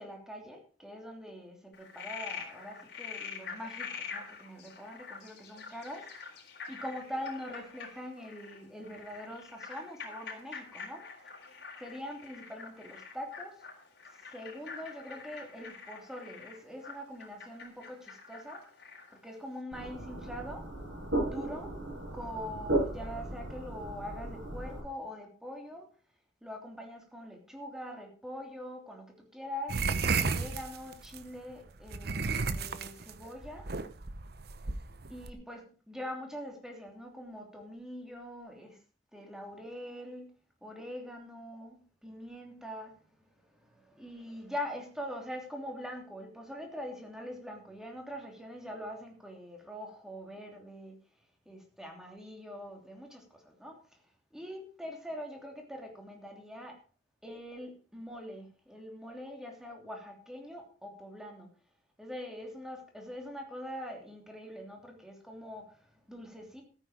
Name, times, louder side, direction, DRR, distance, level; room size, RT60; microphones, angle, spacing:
voice 1, 0.0-6.3 6.7-11.0 11.8-13.6 14.0-18.6 19.1-20.6 21.3-21.7 22.1-25.9 26.4-29.8 30.2-33.7 35.1-38.8 39.1-40.3 40.6-51.0 51.4-54.0 54.3-56.8 57.2-61.5 62.0-66.6, equal, 5° right, 2 dB, 3.0 m, -43 dB
Frog, 1.7-19.2, left 5 dB, 65° left, 3.9 m, -45 dB
sound 1, 19.7-24.8, right 1 dB, 75° right, 7.2 m, -35 dB
sound 2, 29.7-31.2 31.9-35.3, right 4 dB, 60° right, 0.9 m, -32 dB
14.0 x 9.0 x 5.0 m, 0.39 s
head